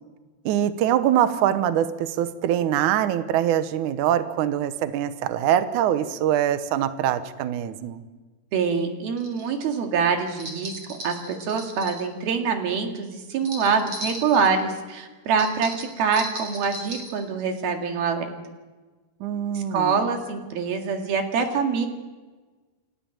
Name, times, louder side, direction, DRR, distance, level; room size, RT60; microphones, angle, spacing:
voice 1, 0.5-8.0 19.2-20.1, right 11 dB, 85° right, 10 dB, 1.7 m, -23 dB
voice 2, 8.5-10.7 11.0-18.3 19.6-21.9, right 5 dB, 60° right, 4 dB, 3.7 m, -25 dB
sound 1, 9.2-9.5 10.4-12.0 13.4-14.5 15.4-17.2, right 1 dB, 35° right, 4.3 m, -36 dB
29.5 x 12.5 x 8.9 m, 1.3 s
omnidirectional pair, 5.1 m